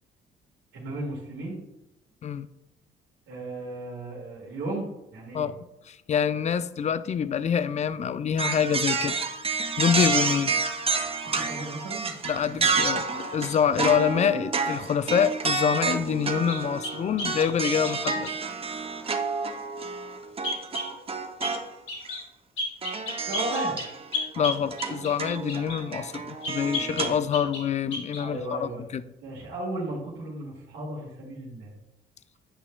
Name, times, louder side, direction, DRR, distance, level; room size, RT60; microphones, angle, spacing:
voice 1, 0.7-1.6 3.3-5.5 10.0-10.1 11.1-12.1 13.7-13.8 23.3-23.8 26.9-27.1 28.2-28.8 29.2-31.7, right 2 dB, 85° right, -5 dB, 1.7 m, -35 dB
voice 2, 5.9-9.2 9.5-10.6 12.2-18.3 24.4-29.0, left 8 dB, 35° left, 14 dB, 0.4 m, -26 dB
sound 1, 8.4-21.7 22.0-22.2 22.8-27.2, right 4 dB, 30° right, 0.6 m, -29 dB
sound 2, 16.5-18.4 20.4-20.9 21.4-21.6 21.9-22.2 22.6-25.8 26.4-27.7 27.9-28.2, left 2 dB, 75° left, 2.1 m, -33 dB
8.5 x 5.4 x 2.2 m, 0.93 s
cardioid pair, 90°, 20 cm